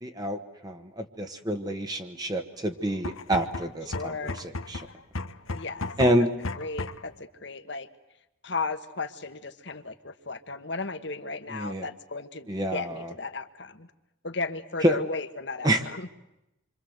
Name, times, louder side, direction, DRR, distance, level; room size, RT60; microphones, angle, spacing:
voice 1, 0.0-4.9 6.0-6.3 11.5-11.9 12.5-13.1 14.8-15.0 15.6-15.8, right 1 dB, 20° right, 5 dB, 1.3 m, -27 dB
sound 1, 2.9-7.1, left 3 dB, 90° left, 1.4 m, -35 dB
voice 2, 3.9-4.4 5.5-5.9 6.2-6.3 6.6-7.9 8.4-13.9 14.2-16.1, left 3 dB, 55° left, 10 dB, 1.5 m, -35 dB
27.5 x 25.0 x 8.0 m, 0.92 s
head